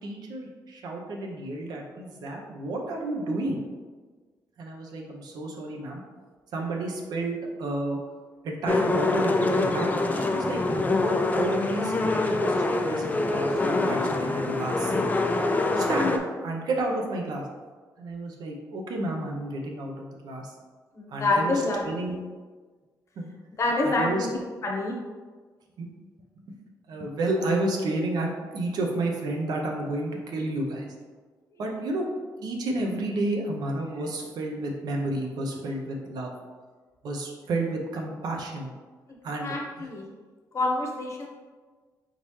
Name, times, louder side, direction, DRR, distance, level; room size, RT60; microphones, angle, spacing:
voice 1, 0.0-3.6 4.6-6.0 6.5-8.0 8.4-15.1 15.7-17.4 18.0-20.5 21.1-21.5 21.8-22.2 23.2-23.3 23.8-24.3 25.8-25.9 26.9-30.9 31.6-32.1 32.4-36.3 37.0-38.7 39.2-39.9, right 2 dB, 75° right, 1 dB, 0.8 m, -31 dB
sound 1, 8.7-16.2, left 2 dB, 25° left, 0.4 m, -25 dB
voice 2, 20.9-21.8 23.6-25.0 31.7-31.8 39.4-40.0 40.5-41.3, left 2 dB, 45° left, 0 dB, 0.9 m, -27 dB
4.2 x 3.8 x 3.1 m, 1.4 s
cardioid pair, 110°, 7 cm